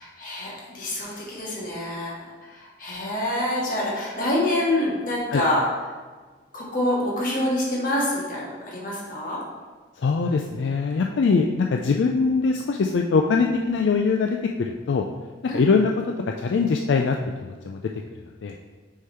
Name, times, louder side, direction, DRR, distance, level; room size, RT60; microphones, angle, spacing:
voice 1, 0.0-5.6 6.5-9.4 15.5-15.6, left 1 dB, 50° left, -5 dB, 1.7 m, -26 dB
voice 2, 10.0-15.0 15.5-15.9 16.4-17.2 17.4-17.8 18.4-18.6, left 4 dB, 75° left, 2 dB, 0.4 m, -22 dB
6.2 x 3.8 x 4.4 m, 1.4 s
head